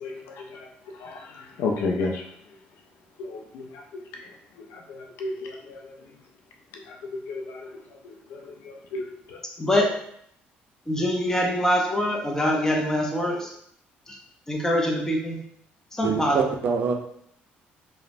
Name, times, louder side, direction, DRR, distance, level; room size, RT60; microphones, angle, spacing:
voice 1, 0.0-0.7 1.0-2.2 3.2-3.6 4.7-5.9 7.3-7.7 8.0-8.4 8.6-9.4, left 3 dB, 80° left, 2 dB, 0.3 m, -32 dB
voice 2, 9.6-9.9 10.9-13.5 14.5-15.4 16.0-16.4, left 1 dB, 15° left, 0 dB, 0.6 m, -24 dB
voice 3, 16.0-16.9, right 6 dB, 55° right, 4 dB, 0.4 m, -25 dB
2.9 x 2.0 x 2.5 m, 0.69 s
cardioid pair, 100°, 4 cm